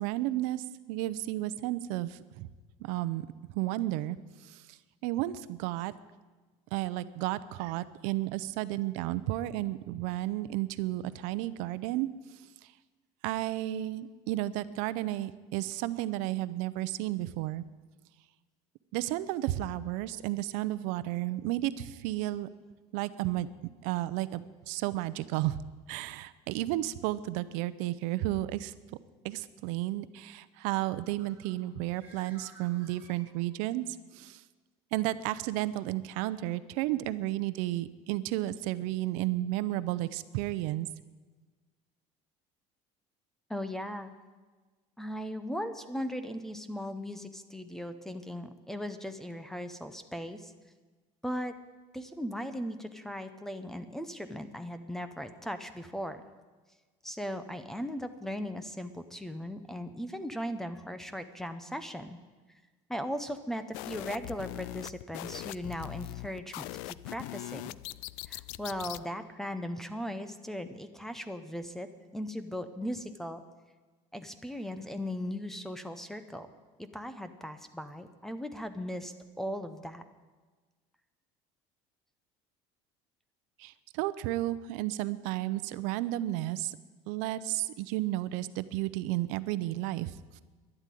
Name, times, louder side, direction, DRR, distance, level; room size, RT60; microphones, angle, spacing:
voice 1, 0.0-2.5 2.8-3.3 3.5-5.9 6.7-12.1 13.2-17.6 18.9-22.5 22.9-23.5 23.8-25.6 25.9-29.0 29.2-34.4 34.9-40.9 83.6-86.8 87.1-90.4, right 15 dB, 70° right, 15 dB, 0.6 m, -33 dB
Bird, 30.9-33.8, right 3 dB, 15° right, 5.2 m, -57 dB
voice 2, 43.5-44.1 45.0-50.5 51.2-51.5 51.9-56.2 57.0-62.2 62.9-67.7 68.3-71.9 72.1-73.4 74.1-76.5 76.8-80.0, equal, 5° left, 10 dB, 0.6 m, -38 dB
sound 1, 63.7-69.0, left 18 dB, 75° left, 0.4 m, -41 dB
12.0 x 11.0 x 9.2 m, 1.3 s
cardioid pair, 180°, 14 cm